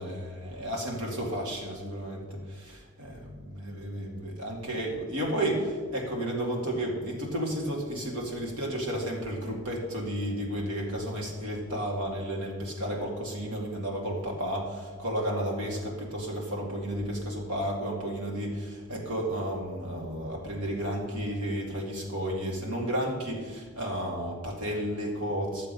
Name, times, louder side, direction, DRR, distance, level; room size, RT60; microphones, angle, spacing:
voice 1, 0.0-25.7, equal, 85° right, -1 dB, 2.3 m, -32 dB
12.5 x 7.3 x 5.5 m, 1.5 s
head